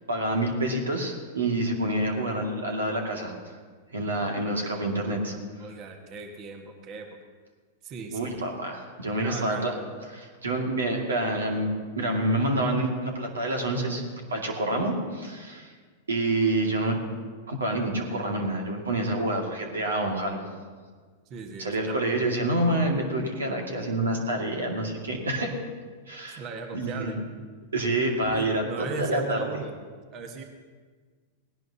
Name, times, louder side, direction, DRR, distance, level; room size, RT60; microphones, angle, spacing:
voice 1, 0.1-3.3 3.9-5.4 8.1-9.7 10.1-11.7 12.0-14.0 14.3-15.7 16.1-17.0 17.5-20.4 21.6-25.5 26.1-26.4 26.7-27.2 27.7-29.6, right 1 dB, 90° right, 1 dB, 2.2 m, -27 dB
voice 2, 5.6-7.2 7.8-8.5 9.2-9.8 21.3-22.0 26.4-27.2 28.3-29.7 30.1-30.4, right 5 dB, 40° right, 4 dB, 1.5 m, -38 dB
18.5 x 17.0 x 2.9 m, 1.6 s
hypercardioid pair, 105°, 0 cm